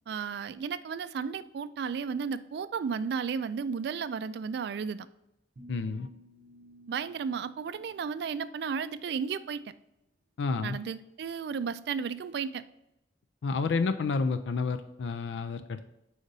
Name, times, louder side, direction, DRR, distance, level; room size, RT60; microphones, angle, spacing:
voice 1, 0.1-5.1 6.9-9.6 10.6-12.6, right 6 dB, 65° right, 14 dB, 0.3 m, -33 dB
sound 1, 5.6-8.7, equal, 50° right, 0.7 m, -55 dB
voice 2, 5.7-6.1 10.4-10.8 13.4-15.8, left 4 dB, 90° left, 10 dB, 0.4 m, -30 dB
5.0 x 4.0 x 5.2 m, 0.86 s
head